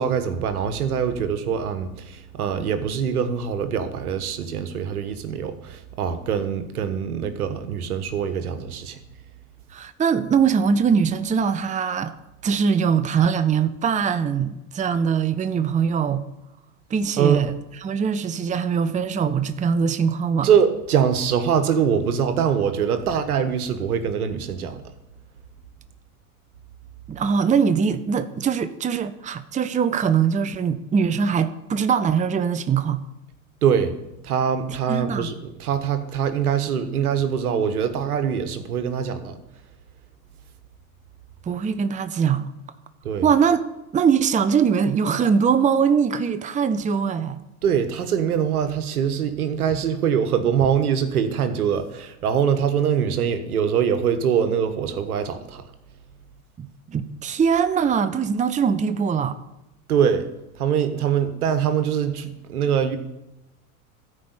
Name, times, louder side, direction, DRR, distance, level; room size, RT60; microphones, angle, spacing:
voice 1, 0.0-9.0 17.2-17.4 20.4-24.8 33.6-33.9 34.2-39.4 43.0-43.3 47.6-55.6 59.9-60.3 60.6-63.0, right 7 dB, 85° right, 1.4 m, -23 dB
voice 2, 9.7-12.1 12.4-16.2 16.9-17.5 17.8-20.5 27.1-33.0 34.9-35.3 41.5-42.5 43.2-43.6 43.9-47.4 56.6-59.4, right 6 dB, 15° right, 0.7 m, -22 dB
13.5 x 5.1 x 8.2 m
hypercardioid pair, 95°, 44 cm